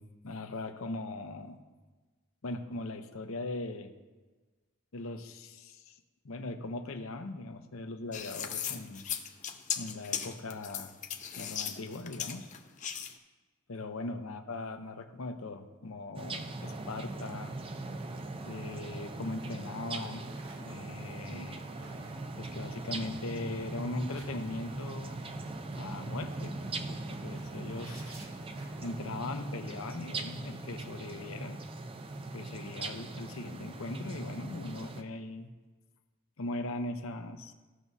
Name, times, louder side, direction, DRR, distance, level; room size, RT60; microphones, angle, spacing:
voice 1, 0.0-1.6 2.4-3.9 4.9-6.0 6.2-9.0 9.8-10.9 11.4-12.5 13.7-17.6 18.4-20.3 20.6-21.7 22.4-25.2 25.7-28.2 28.8-31.6 32.3-35.5 36.4-37.5, left 2 dB, 75° left, 7 dB, 0.7 m, -40 dB
sound 1, 8.1-13.1, left 8 dB, 35° left, 0.5 m, -37 dB
sound 2, 16.2-35.0, right 2 dB, 25° right, 0.4 m, -40 dB
sound 3, 20.2-29.1, right 1 dB, 85° right, 1.7 m, -54 dB
15.5 x 6.0 x 2.7 m, 1.3 s
head